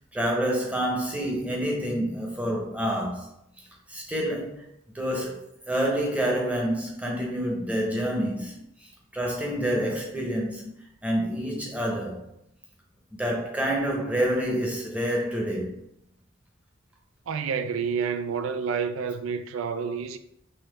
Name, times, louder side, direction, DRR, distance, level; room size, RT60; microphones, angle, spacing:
voice 1, 0.1-3.3 3.9-4.7 4.9-10.7 11.0-12.3 13.1-15.8, equal, 5° right, 0.9 m, -28 dB
voice 2, 17.3-20.2, right 6 dB, 65° right, 0.4 m, -29 dB
5.6 x 2.8 x 3.4 m
head